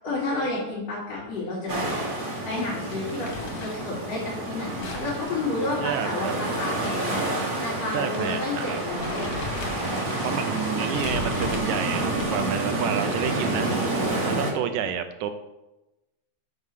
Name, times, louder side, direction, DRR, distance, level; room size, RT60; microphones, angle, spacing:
voice 1, 0.0-1.8 2.4-9.3, left 2 dB, 60° left, -8 dB, 3.3 m, -31 dB
sound 1, 1.7-14.5, right 2 dB, 55° right, 0.5 m, -29 dB
Crumpling crinkling, 2.9-3.9 4.8-6.9 7.2-7.3 8.1-8.3 8.7-10.2 10.9-12.5, left 4 dB, 85° left, 3.1 m, -38 dB
voice 2, 5.6-6.4 7.9-8.8 10.2-13.7 14.3-15.3, right 9 dB, 80° right, 9 dB, 2.1 m, -30 dB
Waves surf, 6.4-14.1, right 1 dB, 20° right, 3.3 m, -45 dB
7.5 x 4.9 x 6.5 m, 1.0 s
omnidirectional pair, 3.3 m